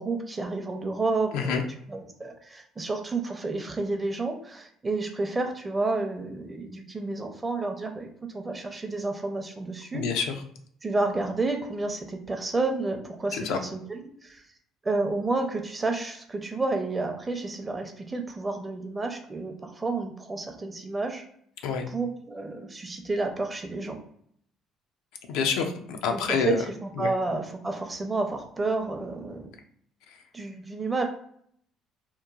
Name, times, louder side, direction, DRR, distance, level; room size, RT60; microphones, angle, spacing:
voice 1, 0.0-1.6 1.9-10.1 10.8-14.4 14.8-21.2 21.9-24.0 26.1-29.6 30.3-31.0, right 3 dB, 25° right, 5 dB, 0.5 m, -30 dB
voice 2, 9.9-10.3 13.3-13.6 21.6-21.9 25.3-25.7 26.0-26.6 27.0-27.1, left 6 dB, 80° left, 4 dB, 0.4 m, -27 dB
3.0 x 2.1 x 2.3 m, 0.65 s
supercardioid pair, 75°, 0 cm